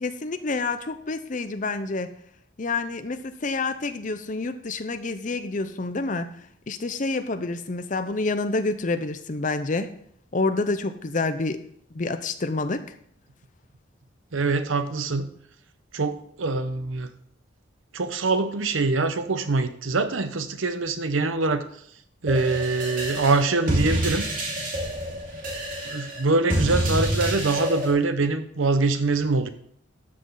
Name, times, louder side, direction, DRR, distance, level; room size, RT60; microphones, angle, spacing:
voice 1, 0.0-2.1 2.6-6.3 6.7-9.9 10.3-11.6 11.9-12.9, left 3 dB, 40° left, 10 dB, 0.6 m, -28 dB
voice 2, 14.3-15.3 15.9-17.1 17.9-21.6 22.2-24.3 25.9-29.5, right 3 dB, 80° right, 10 dB, 0.8 m, -24 dB
sound 1, 22.3-27.9, right 1 dB, 45° right, 2.6 m, -27 dB
12.5 x 6.2 x 3.9 m, 0.66 s
head